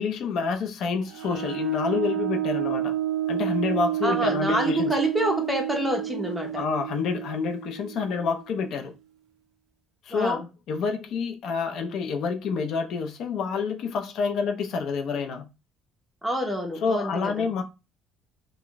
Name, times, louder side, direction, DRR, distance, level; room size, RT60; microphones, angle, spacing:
voice 1, 0.0-2.9 3.3-4.9 6.5-8.9 10.0-15.5 16.8-17.6, left 5 dB, 55° left, 0.5 m, -28 dB
sound 1, 1.1-8.5, right 12 dB, 75° right, 0.4 m, -30 dB
voice 2, 4.0-6.6 10.1-10.5 16.2-17.6, equal, ahead, 0.8 m, -28 dB
2.5 x 2.2 x 3.7 m
cardioid pair, 165°, 0 cm